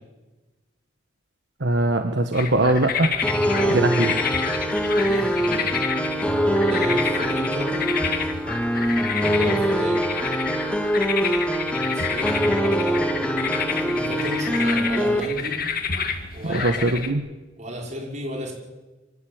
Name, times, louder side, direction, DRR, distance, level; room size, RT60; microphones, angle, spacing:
voice 1, 1.6-3.2 3.7-4.1 16.4-17.2, right 2 dB, 65° right, 6 dB, 1.4 m, -21 dB
sound 1, 2.3-17.1, left 6 dB, 50° left, 2.0 m, -29 dB
sound 2, 3.2-15.2, equal, 5° left, 2.2 m, -23 dB
voice 2, 4.9-5.7 6.6-7.8 9.3-10.1 11.8-13.1 13.5-15.6 16.3-16.8 17.6-18.5, equal, 40° right, 0 dB, 5.6 m, -33 dB
24.5 x 17.0 x 8.9 m, 1.2 s
head